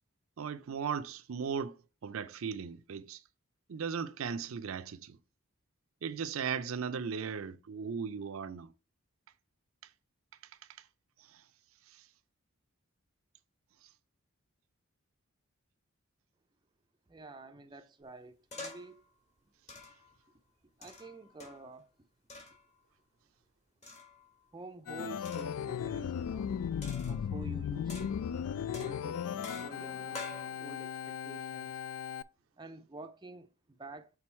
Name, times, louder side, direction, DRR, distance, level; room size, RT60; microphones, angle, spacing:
voice 1, 0.4-1.7 2.0-3.2 3.7-5.2 6.0-8.7, right 6 dB, 75° right, 0.5 m, -37 dB
voice 2, 17.1-19.0 20.6-21.9 24.5-26.5 27.1-28.5 28.7-31.8 32.6-34.1, right 2 dB, 20° right, 0.4 m, -49 dB
sound 1, 18.5-19.0 19.7-20.1 20.8-21.7 22.3-22.6 23.8-24.3 25.2-25.6 26.8-27.5 27.9-28.4 28.7-30.5, left 3 dB, 30° left, 1.6 m, -47 dB
Organ, 24.9-32.2, left 8 dB, 85° left, 0.3 m, -37 dB
6.1 x 3.8 x 4.4 m
head